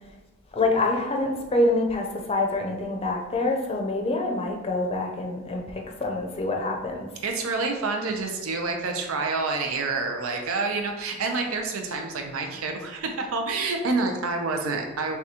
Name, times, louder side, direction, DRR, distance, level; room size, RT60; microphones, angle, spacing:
voice 1, 0.5-7.1, left 2 dB, 30° left, 1 dB, 0.5 m, -26 dB
voice 2, 7.2-15.2, right 3 dB, 90° right, 3 dB, 0.5 m, -28 dB
6.0 x 2.3 x 2.8 m, 1.1 s
head